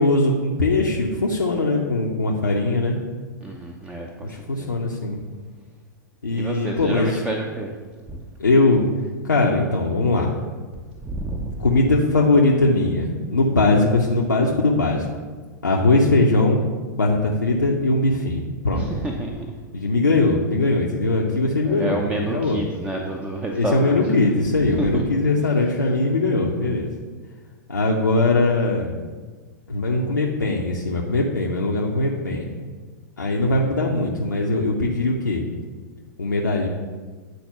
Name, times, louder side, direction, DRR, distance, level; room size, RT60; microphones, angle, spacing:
voice 1, 0.0-3.0 4.2-5.2 6.2-7.2 8.4-8.8 9.2-10.3 11.6-15.1 15.6-16.6 16.9-18.8 19.7-22.6 23.5-26.9 27.7-28.9 29.7-32.5 33.2-35.4 36.2-36.7, left 2 dB, 80° left, -2 dB, 0.8 m, -20 dB
voice 2, 3.4-4.3 4.6-4.7 6.3-7.7 8.1-8.2 11.0-11.6 18.7-19.5 21.6-24.4 24.8-25.0, right 2 dB, 10° right, 1 dB, 0.7 m, -29 dB
9.3 x 4.2 x 5.5 m, 1.4 s
figure-of-eight pair, 100°, 10 cm